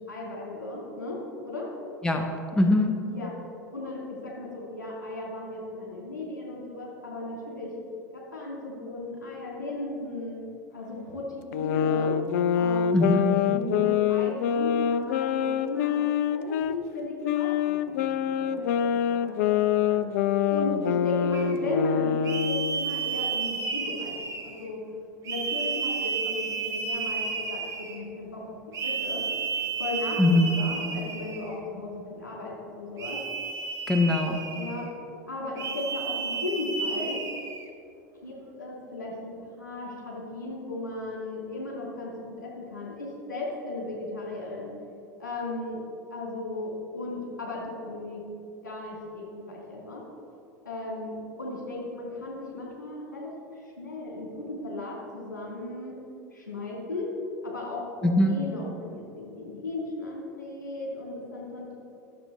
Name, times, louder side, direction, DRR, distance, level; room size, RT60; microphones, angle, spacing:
voice 1, 0.1-1.7 3.1-3.3 3.7-7.7 8.1-10.4 10.7-12.2 12.5-13.1 13.4-16.0 16.3-20.0 20.5-24.8 25.2-28.5 28.8-29.2 29.8-33.2 34.5-34.9 35.3-37.2 38.2-44.7 45.2-45.8 46.1-48.2 48.6-50.0 50.6-56.0 56.3-57.1 57.4-57.8 58.2-61.8, left 2 dB, 80° left, -4 dB, 2.6 m, -36 dB
voice 2, 2.0-3.0 12.9-13.3 30.2-30.6 33.9-34.4 58.0-58.4, left 1 dB, 10° left, 3 dB, 0.8 m, -22 dB
sound 1, 11.5-16.8 17.2-22.8, left 9 dB, 55° left, 0.4 m, -25 dB
sound 2, 21.3-21.6 22.2-24.7 25.2-28.0 28.7-31.5 33.0-34.9 35.6-37.7, right 5 dB, 35° right, 1.4 m, -32 dB
12.0 x 7.1 x 4.3 m, 2.6 s
figure-of-eight pair, 75°, 10 cm